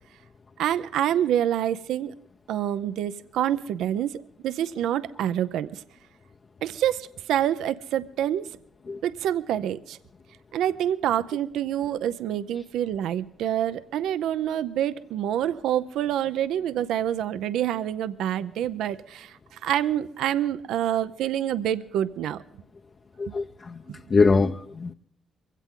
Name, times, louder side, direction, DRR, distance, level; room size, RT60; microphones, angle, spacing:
voice 1, 0.6-2.1 2.5-5.8 6.6-8.5 9.0-10.0 10.5-22.4, right 11 dB, 85° right, 13 dB, 0.6 m, -27 dB
voice 2, 23.2-23.8 24.1-24.9, left 4 dB, 40° left, 5 dB, 0.7 m, -22 dB
22.5 x 16.5 x 3.7 m, 0.69 s
cardioid pair, 90°, 0 cm